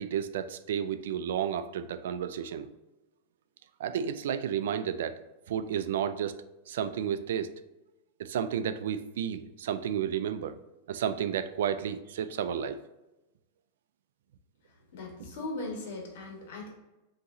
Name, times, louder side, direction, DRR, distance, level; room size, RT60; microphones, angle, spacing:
voice 1, 0.0-2.7 3.8-5.2 5.5-7.5 8.2-10.6 10.9-12.8, right 8 dB, 75° right, 12 dB, 0.3 m, -32 dB
voice 2, 14.9-16.7, left 2 dB, 65° left, -1 dB, 1.5 m, -38 dB
5.3 x 2.9 x 2.7 m, 1.0 s
hypercardioid pair, 130°, 0 cm